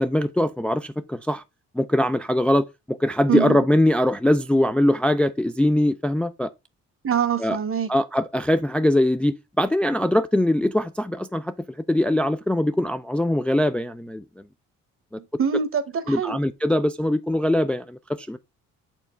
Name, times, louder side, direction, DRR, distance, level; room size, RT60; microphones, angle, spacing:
voice 1, 0.0-1.4 1.8-6.5 7.4-7.6 7.9-11.5 11.9-14.2 16.1-18.4, left 1 dB, 5° left, 0.4 m, -22 dB
voice 2, 7.0-7.9 15.4-16.4, right 7 dB, 45° right, 1.3 m, -24 dB
7.1 x 4.5 x 3.2 m
cardioid pair, 90°, 30 cm